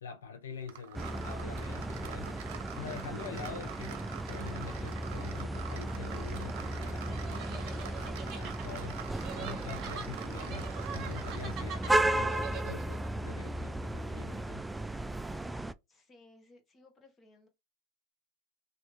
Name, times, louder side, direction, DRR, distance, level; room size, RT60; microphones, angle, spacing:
voice 1, 0.0-2.4 2.8-9.0 9.3-10.7 10.9-14.6, left 6 dB, 85° left, 0.6 m, -46 dB
sound 1, 0.7-11.8, right 10 dB, 70° right, 0.6 m, -46 dB
sound 2, 0.9-15.7, right 1 dB, 10° right, 0.3 m, -35 dB
sound 3, 7.1-13.1, right 6 dB, 45° right, 1.5 m, -45 dB
voice 2, 15.9-17.5, left 2 dB, 25° left, 1.2 m, -60 dB
3.1 x 2.6 x 3.1 m
hypercardioid pair, 95°, 0 cm